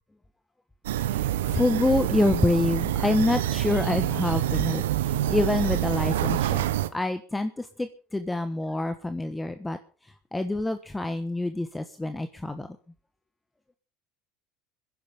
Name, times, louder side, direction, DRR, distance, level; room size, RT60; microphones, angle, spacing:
sound 1, 0.8-6.9, right 13 dB, 85° right, 0.8 m, -26 dB
voice 1, 1.1-9.8 10.3-12.7, left 2 dB, 10° left, 9 dB, 1.1 m, -27 dB
25.0 x 10.5 x 3.7 m, 0.38 s
hypercardioid pair, 80°, 0 cm